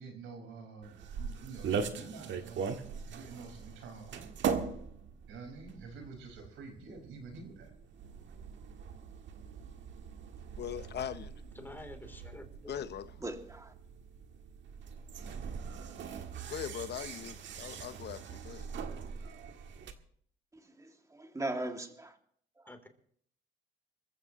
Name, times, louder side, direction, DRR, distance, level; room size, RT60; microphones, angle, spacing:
voice 1, 0.0-4.3 5.3-7.7, right 4 dB, 85° right, 5.0 m, -48 dB
sound 1, 0.8-19.9, right 6 dB, 70° right, 1.6 m, -41 dB
voice 2, 10.6-11.3 12.7-13.1 16.5-18.7, left 9 dB, 60° left, 0.8 m, -40 dB
voice 3, 11.5-12.8 15.2-15.3 22.7-22.9, left 1 dB, 10° left, 3.2 m, -49 dB
voice 4, 13.2-13.7 20.8-22.1 22.6-22.7, right 2 dB, 15° right, 2.3 m, -39 dB
26.0 x 15.0 x 3.0 m
cardioid pair, 90°, 20 cm